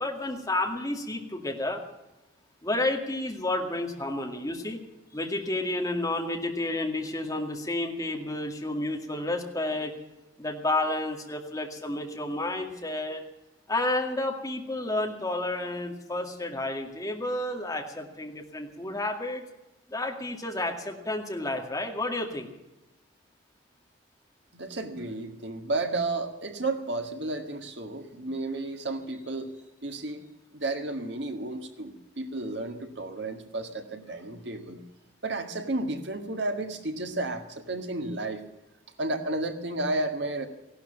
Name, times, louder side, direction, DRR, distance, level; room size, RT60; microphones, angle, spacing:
voice 1, 0.0-1.8 2.6-4.8 5.1-9.9 10.4-13.2 13.7-19.4 19.9-22.5, left 2 dB, 15° left, 2 dB, 2.1 m, -31 dB
voice 2, 24.5-29.5 29.8-30.2 30.5-34.8 35.2-38.4 39.0-40.5, right 2 dB, 60° right, 6 dB, 1.8 m, -32 dB
16.0 x 12.0 x 7.1 m, 1.0 s
head